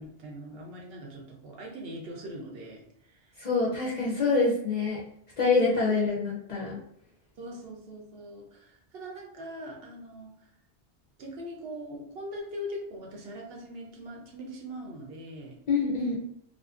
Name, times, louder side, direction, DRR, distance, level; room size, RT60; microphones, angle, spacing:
voice 1, 0.0-3.3 5.6-6.0 7.4-10.5 11.2-15.6, equal, 65° right, 0 dB, 0.8 m, -41 dB
voice 2, 3.4-5.0 5.4-6.8 15.7-16.2, left 4 dB, 50° left, -4 dB, 0.5 m, -26 dB
2.5 x 2.4 x 2.4 m, 0.71 s
omnidirectional pair, 1.2 m